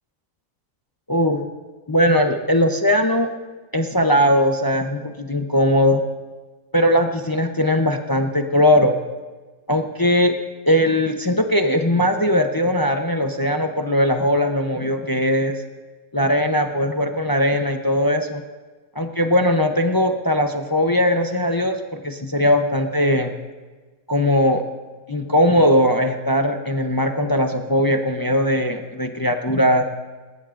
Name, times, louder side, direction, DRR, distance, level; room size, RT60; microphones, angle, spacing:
voice 1, 1.1-1.4 1.9-3.3 3.7-6.0 6.7-9.0 9.7-10.3 10.7-15.6 16.1-18.4 19.0-23.3 24.1-24.6 25.1-29.8, equal, 25° left, 4 dB, 0.4 m, -19 dB
19.5 x 19.0 x 2.5 m, 1.3 s
omnidirectional pair, 1.5 m